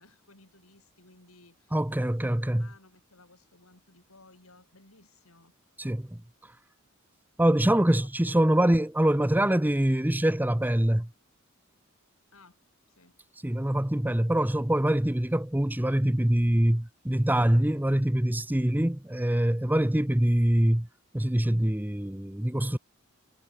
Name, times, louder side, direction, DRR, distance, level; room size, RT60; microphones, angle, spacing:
voice 1, 0.0-5.5 7.6-8.1 8.7-8.8 12.3-12.6 12.9-13.2, left 2 dB, 85° left, 7.5 m, -57 dB
voice 2, 1.7-2.7 5.8-6.2 7.4-11.1 13.4-20.9 21.1-22.8, right 1 dB, 10° right, 0.7 m, -24 dB
head